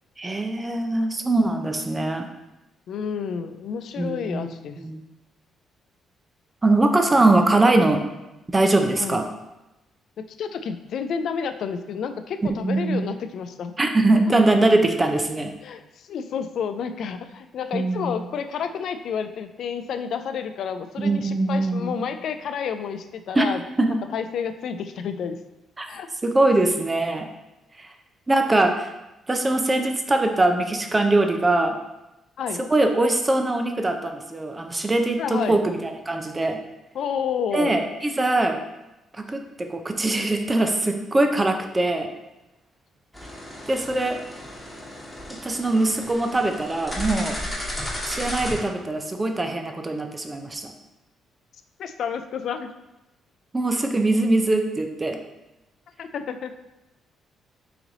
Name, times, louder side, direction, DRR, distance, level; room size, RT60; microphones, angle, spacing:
voice 1, 0.2-2.3 4.0-4.5 4.8-5.0 6.6-8.0 8.5-9.3 12.6-13.1 13.8-15.5 17.7-18.3 21.0-22.0 23.3-23.5 23.8-24.0 25.8-25.9 26.2-27.3 27.8-27.9 28.3-28.9 29.3-31.8 32.7-36.6 37.5-38.6 39.1-42.1 43.7-44.2 45.4-47.4 48.0-50.7 53.5-55.2, right 2 dB, 20° right, 5 dB, 0.5 m, -22 dB
voice 2, 2.9-4.8 9.0-9.2 10.2-13.7 15.6-23.6 24.1-25.4 25.9-26.1 32.4-32.6 35.2-35.6 36.9-37.8 51.8-52.7 56.0-56.6, left 7 dB, 70° left, 9 dB, 0.3 m, -30 dB
sound 1, 43.1-48.6, left 1 dB, 5° left, 1.3 m, -34 dB
3.9 x 3.1 x 3.9 m, 0.97 s
cardioid pair, 90°, 0 cm